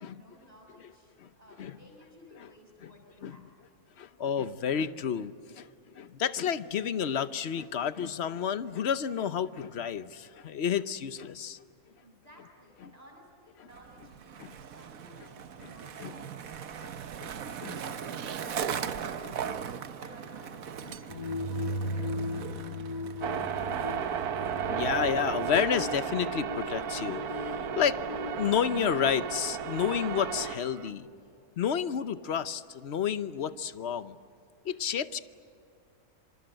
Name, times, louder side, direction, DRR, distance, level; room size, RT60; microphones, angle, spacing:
voice 1, 0.0-3.5 12.0-16.6 17.4-18.5 19.3-24.0, equal, 25° right, 0 dB, 6.4 m, -56 dB
voice 2, 4.0-5.7 6.0-11.6 13.6-13.7 14.4-14.6 16.0-16.1 16.8-16.9 17.2-17.3 17.6-17.7 18.8-18.9 19.2-19.4 23.8-23.9 24.5-28.0 28.4-31.1 31.6-34.2 34.6-35.2, left 8 dB, 55° left, 14 dB, 1.0 m, -31 dB
Skateboard, 13.7-26.4, right 8 dB, 70° right, 1.4 m, -40 dB
sound 1, 21.1-31.0, left 2 dB, 30° left, 1.6 m, -38 dB
sound 2, 23.2-30.9, right 8 dB, 85° right, 1.5 m, -34 dB
26.5 x 25.5 x 7.9 m, 2.5 s
omnidirectional pair, 1.6 m